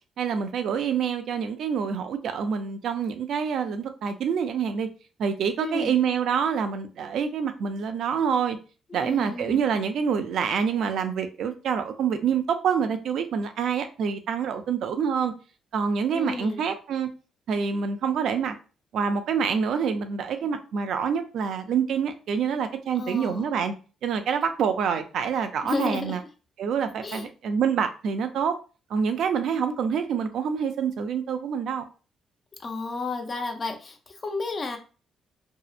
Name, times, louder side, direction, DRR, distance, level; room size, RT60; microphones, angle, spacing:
voice 1, 0.2-4.9 5.2-8.6 8.9-15.3 15.7-17.1 17.5-18.6 18.9-23.7 24.0-26.2 26.6-28.5 28.9-31.8, right 7 dB, 70° right, 0.4 m, -26 dB
voice 2, 5.6-6.0 8.9-9.6 16.1-16.6 22.9-23.5 25.6-26.2 27.0-27.3 32.6-34.8, left 3 dB, 35° left, 0.5 m, -32 dB
2.7 x 2.0 x 2.3 m
cardioid pair, 90°, 0 cm